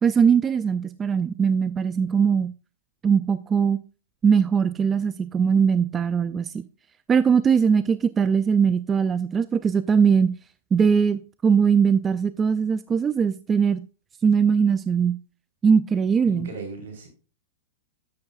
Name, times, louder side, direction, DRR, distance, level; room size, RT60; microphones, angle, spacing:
voice 1, 0.0-2.5 3.0-3.8 4.2-6.6 7.1-10.3 10.7-13.8 14.2-15.2 15.6-16.5, right 6 dB, 20° right, 0.4 m, -20 dB
voice 2, 16.3-17.1, right 2 dB, 70° right, 4.1 m, -36 dB
11.0 x 7.9 x 2.4 m
hypercardioid pair, 120°, 0 cm